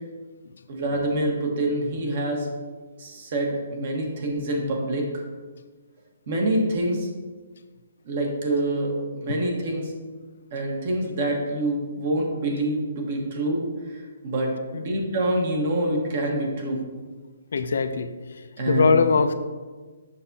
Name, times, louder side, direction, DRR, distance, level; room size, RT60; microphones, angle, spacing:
voice 1, 0.7-2.5 3.0-5.2 6.3-7.1 8.0-9.9 10.5-16.9 18.6-19.0, right 1 dB, 40° right, 0 dB, 1.3 m, -26 dB
voice 2, 17.5-19.3, left 4 dB, 70° left, 9 dB, 0.4 m, -22 dB
7.0 x 5.8 x 2.7 m, 1.4 s
hypercardioid pair, 165°, 0 cm